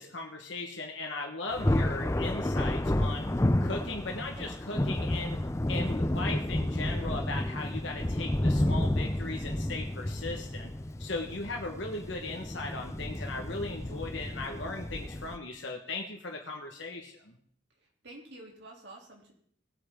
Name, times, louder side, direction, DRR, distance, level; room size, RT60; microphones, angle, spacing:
voice 1, 0.0-3.3 3.6-5.4 5.7-10.7 11.0-17.4, left 3 dB, 65° left, 1 dB, 1.5 m, -38 dB
Thunder, 1.5-15.4, left 1 dB, 15° left, 0.5 m, -31 dB
voice 2, 17.8-19.3, right 2 dB, 60° right, 0 dB, 3.2 m, -49 dB
19.5 x 8.2 x 3.8 m, 0.62 s
head